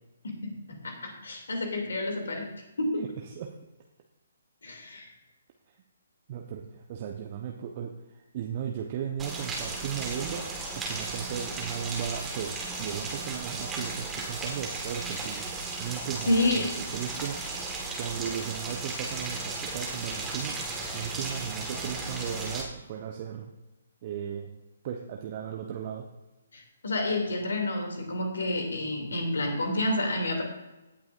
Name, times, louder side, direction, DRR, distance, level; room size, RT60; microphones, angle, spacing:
voice 1, 0.2-2.5 2.8-3.0 4.6-5.1 16.3-16.8 26.5-30.4, left 1 dB, 65° left, 2 dB, 2.7 m, -29 dB
voice 2, 2.9-3.5 6.3-10.4 10.9-15.5 15.8-17.4 17.9-20.6 20.9-23.5 24.0-24.5 24.8-26.0, right 8 dB, 35° right, 2 dB, 0.9 m, -36 dB
Rain, 9.2-22.6, right 3 dB, 10° right, 1.6 m, -35 dB
17.0 x 8.6 x 2.6 m, 1.0 s
figure-of-eight pair, 130°, 0 cm